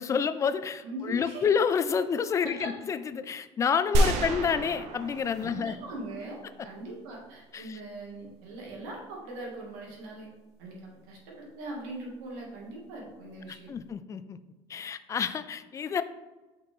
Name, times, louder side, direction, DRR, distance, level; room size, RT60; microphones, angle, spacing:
voice 1, 0.0-5.8 7.5-7.8 13.5-14.4 14.7-16.0, left 6 dB, 25° left, 13 dB, 0.3 m, -29 dB
voice 2, 0.8-1.5 2.4-2.7 5.4-10.3 10.6-13.7, right 2 dB, 90° right, -2 dB, 1.9 m, -41 dB
sound 1, 3.9-6.3, right 1 dB, 65° right, 0.7 m, -28 dB
5.7 x 5.1 x 3.5 m, 1.2 s
cardioid pair, 125°, 12 cm